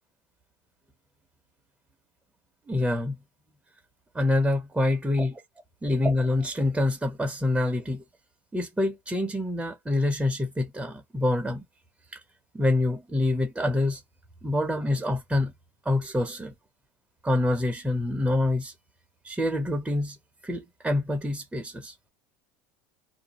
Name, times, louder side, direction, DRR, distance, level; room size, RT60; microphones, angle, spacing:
voice 1, 2.7-3.2 4.1-5.4 5.8-8.0 8.5-11.6 12.1-12.2 12.5-14.0 14.4-15.5 15.9-16.5 17.2-18.7 19.2-20.2 20.4-21.9, left 2 dB, 5° right, 0.5 m, -26 dB
2.4 x 2.3 x 2.8 m
cardioid pair, 145°, 12 cm